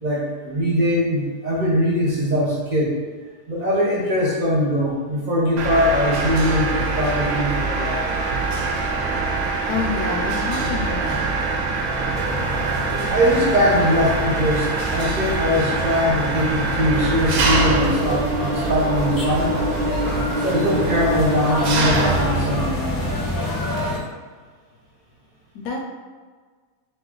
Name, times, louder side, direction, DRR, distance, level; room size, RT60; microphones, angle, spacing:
voice 1, 0.0-2.9 3.5-8.0 13.1-19.5 20.4-22.9, equal, 35° right, -5 dB, 1.0 m, -21 dB
Mechanisms, 5.6-23.6, right 3 dB, 75° right, 1.1 m, -24 dB
voice 2, 9.7-11.3 25.5-25.8, left 4 dB, 80° left, 1 dB, 1.2 m, -27 dB
sound 1, 12.1-24.0, left 1 dB, 25° left, 0.4 m, -29 dB
3.8 x 3.0 x 3.8 m, 1.5 s
omnidirectional pair, 1.6 m